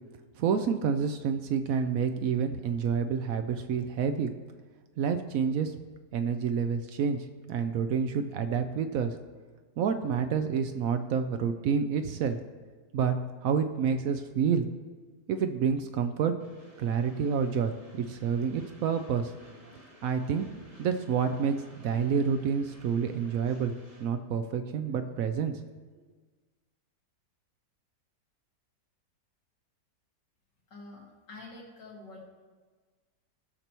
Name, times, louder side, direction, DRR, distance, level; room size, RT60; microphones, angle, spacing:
voice 1, 0.4-4.3 5.0-5.7 6.1-7.2 7.5-9.2 9.8-12.4 12.9-13.1 13.4-14.7 15.3-16.3 16.8-19.3 20.0-20.5 20.8-23.7 24.0-25.5, right 6 dB, 70° right, 8 dB, 0.8 m, -28 dB
Train, 16.4-24.0, equal, 55° right, 2.4 m, -55 dB
voice 2, 30.7-32.2, left 2 dB, 90° left, -3 dB, 2.7 m, -47 dB
16.5 x 6.7 x 3.0 m, 1.4 s
omnidirectional pair, 1.8 m